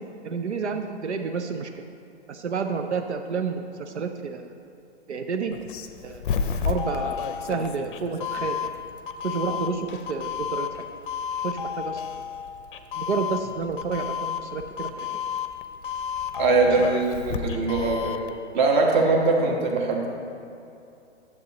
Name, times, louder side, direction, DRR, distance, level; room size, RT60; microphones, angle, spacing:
voice 1, 0.2-1.7 2.3-4.5 5.1-5.5 6.0-6.2 6.6-8.7 9.2-10.7 11.4-12.0 12.9-15.1, right 5 dB, 80° right, 6 dB, 0.6 m, -30 dB
Doorbell, 5.5-18.3, left 7 dB, 50° left, 0.6 m, -31 dB
voice 2, 16.4-18.2 18.5-20.1, right 3 dB, 45° right, 0 dB, 1.5 m, -22 dB
10.5 x 7.5 x 3.0 m, 2.7 s
figure-of-eight pair, 125°, 34 cm